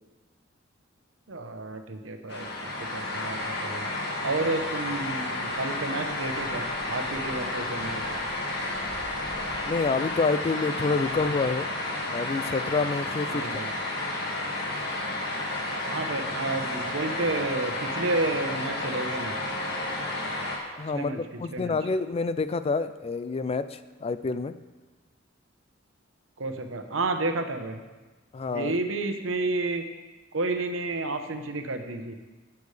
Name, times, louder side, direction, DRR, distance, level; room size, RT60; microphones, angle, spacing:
voice 1, 1.3-3.9 4.2-8.2 13.3-13.7 15.9-19.4 20.9-21.2 21.5-21.8 26.4-27.8 28.5-29.8 30.3-32.1, right 2 dB, 80° right, 6 dB, 0.9 m, -31 dB
sound 1, 2.3-20.6, left 2 dB, 60° left, 1.7 m, -31 dB
voice 2, 9.6-11.7 12.1-13.5 20.8-24.5 28.3-28.8, left 4 dB, 30° left, 13 dB, 0.4 m, -28 dB
15.5 x 7.0 x 3.3 m, 1.2 s
head